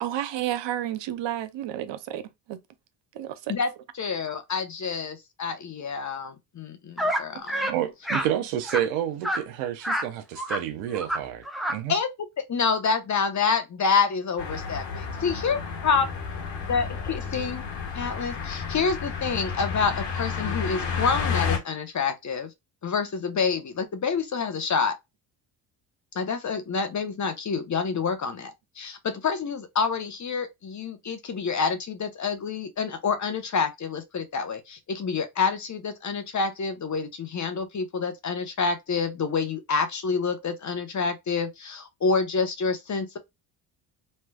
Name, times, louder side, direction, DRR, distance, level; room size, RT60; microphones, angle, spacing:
voice 1, 0.0-2.2 2.5-2.6 3.2-3.3, right 12 dB, 60° right, 0.7 m, -30 dB
voice 2, 3.5-7.7 11.9-12.1 12.5-16.1 16.7-17.6 17.9-22.5 22.8-24.9 26.1-43.2, left 5 dB, 35° left, 0.9 m, -28 dB
sound 1, 7.0-7.2 7.5-7.7 8.0-8.3 8.6-8.8 9.2-9.4 9.8-10.1 10.4-10.6 10.9-11.2 11.4-11.8, equal, ahead, 0.7 m, -27 dB
voice 3, 7.7-11.4 11.7-12.0, right 11 dB, 85° right, 0.8 m, -29 dB
sound 2, 14.4-21.6, left 6 dB, 55° left, 1.5 m, -31 dB
3.2 x 3.1 x 2.2 m
supercardioid pair, 65°, 49 cm